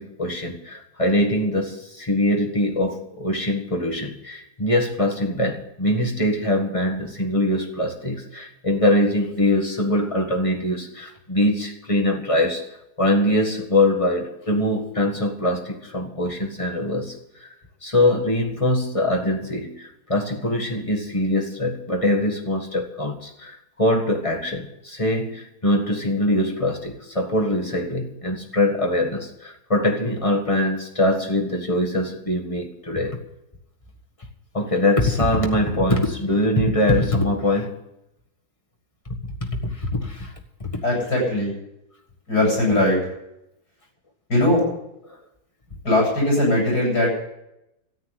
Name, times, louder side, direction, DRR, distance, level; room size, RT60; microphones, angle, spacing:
voice 1, 0.0-12.6 13.0-17.5 17.8-33.2 34.5-37.8 39.0-39.3 39.6-40.3 40.6-40.8, left 1 dB, 20° left, 1 dB, 1.6 m, -23 dB
voice 2, 40.8-41.5 42.3-43.0 44.3-44.6 45.8-47.1, left 1 dB, 85° left, -3 dB, 8.6 m, -19 dB
13.5 x 8.4 x 9.7 m, 0.86 s
omnidirectional pair, 1.7 m